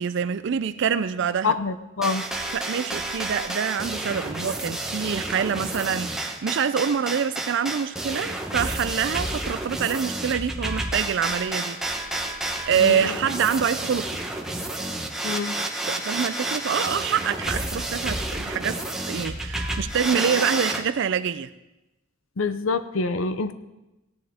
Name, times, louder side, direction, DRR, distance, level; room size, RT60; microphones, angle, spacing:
voice 1, 0.0-1.6 2.5-11.8 12.7-14.2 15.9-21.5, right 7 dB, 65° right, 0.4 m, -26 dB
voice 2, 1.4-2.2 12.8-13.1 15.2-15.6 22.4-23.5, left 4 dB, 80° left, 0.6 m, -26 dB
sound 1, 2.0-20.8, right 1 dB, 5° right, 0.9 m, -30 dB
17.5 x 10.5 x 3.6 m
head